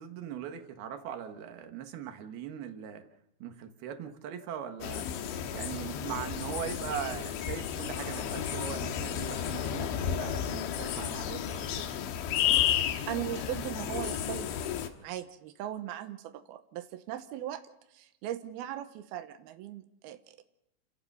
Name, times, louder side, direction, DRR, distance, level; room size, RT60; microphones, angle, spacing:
voice 1, 0.0-3.0 3.4-5.1 5.5-11.9, right 9 dB, 65° right, 7 dB, 2.9 m, -40 dB
sound 1, 4.8-14.9, left 10 dB, 70° left, 3.5 m, -32 dB
voice 2, 12.8-17.6 17.9-20.4, right 12 dB, 85° right, 8 dB, 2.2 m, -39 dB
29.5 x 16.0 x 5.5 m, 0.84 s
omnidirectional pair, 5.8 m